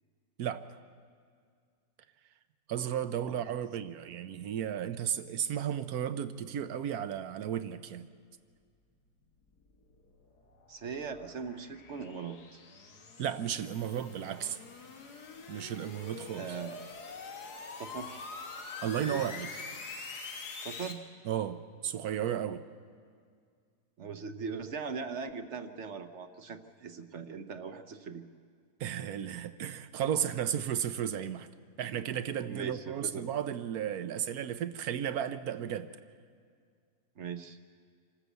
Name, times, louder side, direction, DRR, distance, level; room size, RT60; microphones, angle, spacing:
voice 1, 2.7-8.1 13.2-14.6 15.5-16.6 18.8-19.5 21.2-22.6 28.8-31.5 31.8-35.9, right 9 dB, 75° right, 1.2 m, -34 dB
sound 1, 9.6-20.9, left 4 dB, 85° left, 2.0 m, -45 dB
voice 2, 10.7-12.4 16.3-16.9 17.8-18.3 19.1-19.3 20.6-21.1 24.0-28.3 32.4-33.3 37.2-37.6, right 6 dB, 55° right, 1.0 m, -40 dB
25.5 x 13.5 x 8.1 m
omnidirectional pair, 1.6 m